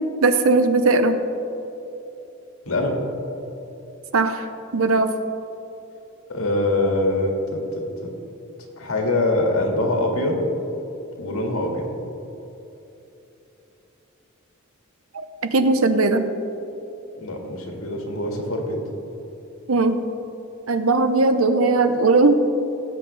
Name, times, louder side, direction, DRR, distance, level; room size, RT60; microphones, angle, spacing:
voice 1, 0.2-1.2 4.1-4.4 4.7-5.1 15.1-16.3 19.7-20.0 20.7-22.4, right 3 dB, 80° right, 9 dB, 0.8 m, -18 dB
voice 2, 2.6-3.0 6.3-8.1 8.8-10.4 11.2-11.9 17.2-18.8, left 2 dB, 85° left, 1 dB, 1.9 m, -24 dB
18.0 x 7.8 x 3.3 m, 3.0 s
head